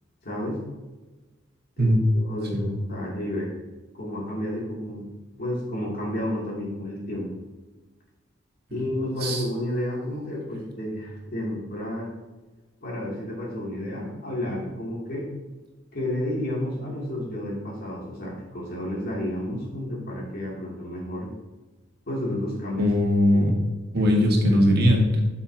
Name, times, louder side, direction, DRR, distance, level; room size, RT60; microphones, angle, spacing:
voice 1, 0.2-0.6 1.8-3.5 4.0-5.1 5.4-7.3 8.7-12.1 12.8-15.3 15.9-21.3 22.1-22.9 23.3-23.4 24.0-24.2 24.5-24.6, left 1 dB, 50° left, -4 dB, 3.0 m, -31 dB
voice 2, 22.8-23.5 23.9-25.2, left 1 dB, 55° right, 0 dB, 1.7 m, -20 dB
12.5 x 5.7 x 2.9 m, 1.2 s
head